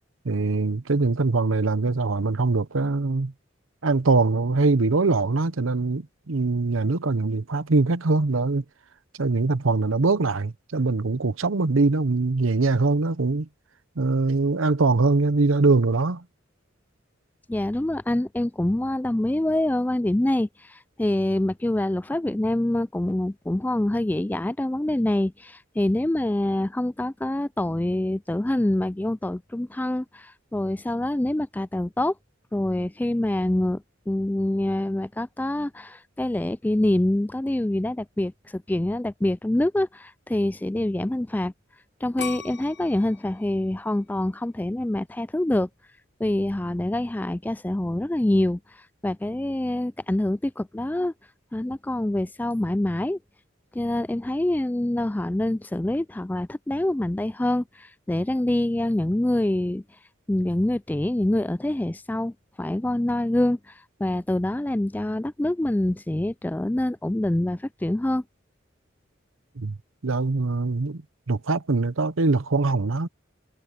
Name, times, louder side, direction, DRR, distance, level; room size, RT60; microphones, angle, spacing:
voice 1, 0.2-3.3 3.8-8.6 9.2-13.5 14.0-16.2 69.6-69.8 70.0-71.0 71.3-73.1, right 3 dB, 90° right, 0.9 m, -22 dB
voice 2, 17.5-32.1 32.5-41.5 42.0-45.7 46.2-48.6 49.0-51.1 51.5-53.2 53.7-59.8 60.3-63.6 64.0-68.2, left 1 dB, 10° left, 0.3 m, -25 dB
sound 1, 42.2-45.1 45.6-46.1, left 7 dB, 60° left, 1.1 m, -40 dB
head